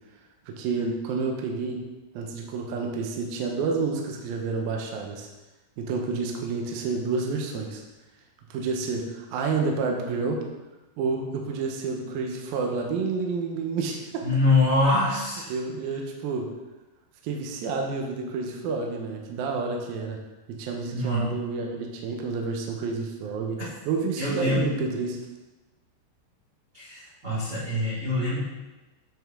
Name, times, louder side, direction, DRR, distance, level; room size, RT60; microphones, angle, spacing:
voice 1, 0.5-1.8 2.1-5.3 5.8-7.8 8.5-10.4 11.0-14.4 15.5-16.5 17.2-20.2 20.5-23.6 23.9-25.2, right 4 dB, 85° right, 1 dB, 2.1 m, -29 dB
voice 2, 14.2-15.5 20.9-21.3 24.2-24.6 26.7-28.4, left 2 dB, 35° right, -10 dB, 1.8 m, -24 dB
9.1 x 5.4 x 3.6 m, 1.1 s
omnidirectional pair, 5.5 m